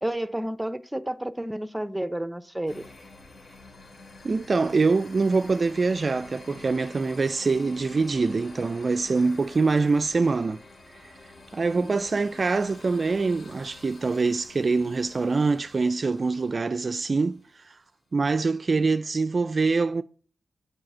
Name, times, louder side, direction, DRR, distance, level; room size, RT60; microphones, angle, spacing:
voice 1, 0.0-2.8 11.7-11.9, right 1 dB, 10° right, 0.7 m, -31 dB
sound 1, 2.7-17.4, left 2 dB, 55° left, 3.6 m, -48 dB
voice 2, 4.2-10.6 11.0-11.1 11.5-17.8 18.1-20.0, right 4 dB, 45° right, 0.3 m, -24 dB
7.7 x 4.8 x 7.1 m
cardioid pair, 65°, 0 cm